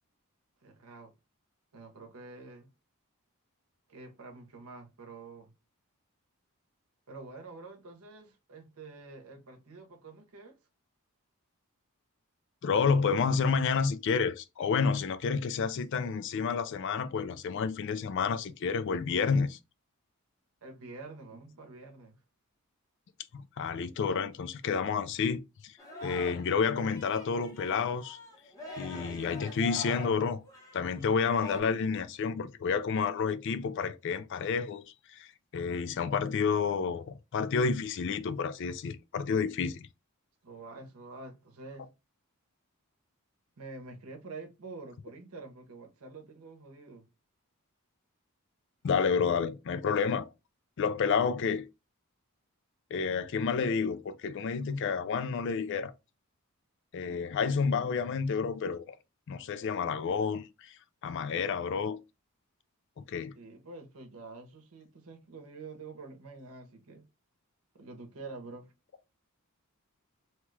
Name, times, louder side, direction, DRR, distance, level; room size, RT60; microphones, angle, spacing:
voice 1, 0.6-1.1 1.7-2.7 3.9-5.5 7.1-10.6 20.6-22.2 40.4-41.9 43.6-47.1 63.3-67.1 67.7-68.7, right 3 dB, 75° right, 0.8 m, -47 dB
voice 2, 12.6-19.6 23.3-25.7 26.0-28.2 28.8-30.4 30.7-34.8 35.1-39.8 48.8-50.3 50.8-51.6 52.9-55.9 56.9-58.8 59.3-60.7 61.0-62.0 63.0-63.3, left 5 dB, 55° left, 0.3 m, -30 dB
Singing, 25.8-26.6 26.8-31.6, left 3 dB, 15° left, 0.9 m, -44 dB
2.9 x 2.3 x 3.1 m
head